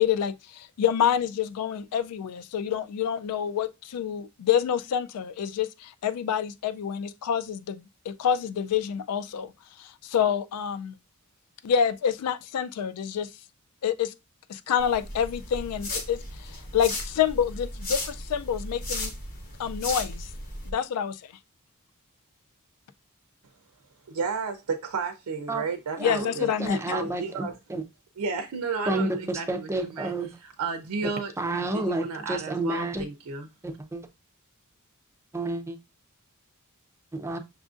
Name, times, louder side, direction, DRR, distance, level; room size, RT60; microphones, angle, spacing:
voice 1, 0.0-9.5 9.8-11.0 11.6-13.3 13.8-14.1 14.5-19.1 19.6-20.3 20.7-21.2 26.0-26.8, left 8 dB, 85° left, 0.3 m, -27 dB
sound 1, 14.8-20.7, left 2 dB, 45° left, 1.0 m, -36 dB
voice 2, 24.1-26.5 26.9-27.6 28.2-30.1 30.4-33.5, right 4 dB, 80° right, 0.5 m, -33 dB
voice 3, 26.0-27.8 28.9-30.3 31.4-33.0 33.6-34.0 35.3-35.8 37.1-37.4, right 2 dB, 10° right, 0.4 m, -30 dB
6.0 x 2.5 x 2.4 m
head